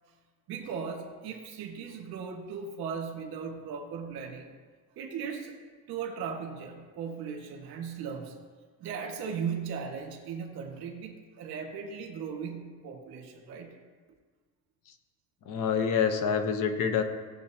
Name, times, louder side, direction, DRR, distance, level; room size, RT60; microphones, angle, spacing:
voice 1, 0.5-4.6 5.0-5.5 5.9-8.4 8.8-13.8 15.7-15.8, right 6 dB, 65° right, 2 dB, 1.9 m, -37 dB
voice 2, 15.5-17.0, left 7 dB, 55° left, 6 dB, 1.1 m, -26 dB
18.0 x 7.5 x 2.9 m, 1.5 s
cardioid pair, 170°, 39 cm